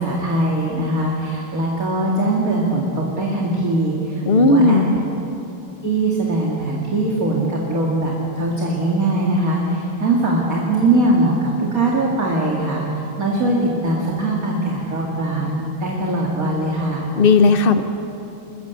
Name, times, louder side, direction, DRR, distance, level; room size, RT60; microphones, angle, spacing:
voice 1, 0.0-5.0 5.8-12.9 13.2-17.1, right 2 dB, 40° right, -3 dB, 2.7 m, -21 dB
voice 2, 4.3-4.9 17.2-17.8, left 3 dB, 45° left, 9 dB, 0.7 m, -14 dB
28.5 x 14.5 x 8.2 m, 3.0 s
omnidirectional pair, 2.4 m